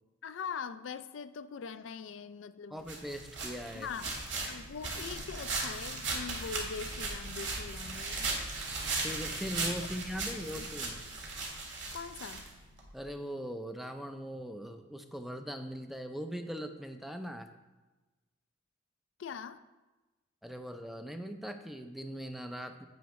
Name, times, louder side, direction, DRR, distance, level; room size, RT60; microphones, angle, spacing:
voice 1, 0.2-2.9 3.7-4.1 4.5-8.3 10.2-10.7 11.9-12.5 19.2-19.6, left 6 dB, 70° left, 12 dB, 0.4 m, -42 dB
voice 2, 2.7-3.9 9.0-11.0 12.9-17.5 20.4-22.9, equal, ahead, 6 dB, 0.4 m, -40 dB
sound 1, 2.9-12.9, right 3 dB, 65° right, 1.8 m, -37 dB
9.3 x 8.0 x 3.1 m, 1.2 s
head